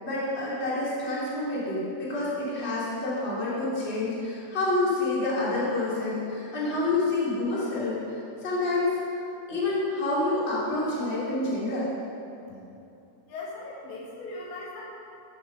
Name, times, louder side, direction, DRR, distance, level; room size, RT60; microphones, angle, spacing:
voice 1, 0.0-9.0 9.5-11.9, left 2 dB, 20° left, -8 dB, 2.4 m, -28 dB
voice 2, 13.3-14.8, left 2 dB, 90° left, -5 dB, 4.3 m, -39 dB
14.0 x 6.7 x 5.4 m, 2.8 s
omnidirectional pair, 5.0 m